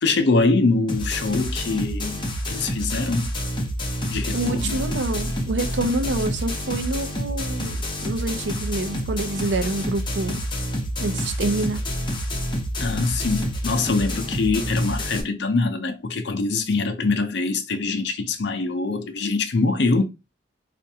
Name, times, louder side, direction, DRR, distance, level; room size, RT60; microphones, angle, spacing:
voice 1, 0.0-2.2 2.5-3.3 4.1-4.7 12.8-20.0, left 3 dB, 65° left, 0.6 m, -23 dB
sound 1, 0.9-15.2, equal, 25° left, 0.7 m, -28 dB
voice 2, 4.3-10.4 11.0-11.8, right 2 dB, 70° right, 0.5 m, -27 dB
4.3 x 2.5 x 2.7 m
head